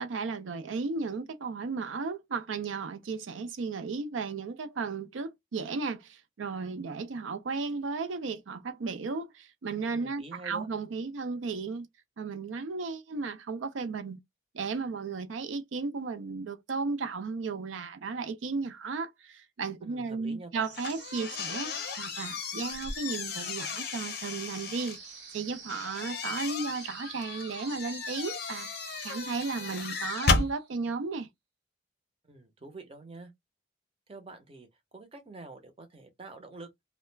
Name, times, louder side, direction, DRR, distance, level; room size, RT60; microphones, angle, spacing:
voice 1, 0.0-11.9 12.2-14.2 14.5-21.7 22.0-28.7 29.0-31.3, right 4 dB, 90° right, 0.5 m, -34 dB
voice 2, 9.9-10.7 19.8-20.7 32.2-33.3 34.1-34.7 34.9-36.7, right 3 dB, 30° right, 0.6 m, -46 dB
sound 1, 20.6-30.8, right 5 dB, 65° right, 0.9 m, -47 dB
sound 2, 20.7-25.0 25.7-30.5, left 4 dB, 55° left, 0.5 m, -34 dB
2.3 x 2.1 x 3.1 m
head